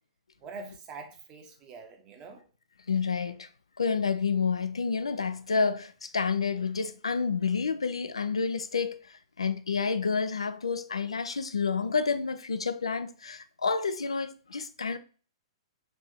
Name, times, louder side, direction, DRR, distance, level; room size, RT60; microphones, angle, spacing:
voice 1, 0.4-2.4, right 4 dB, 30° right, 0.9 m, -44 dB
voice 2, 2.9-3.5 3.8-9.0 9.4-15.0, left 5 dB, 80° left, 0.4 m, -29 dB
4.0 x 2.6 x 3.5 m
figure-of-eight pair, 110°, 3 cm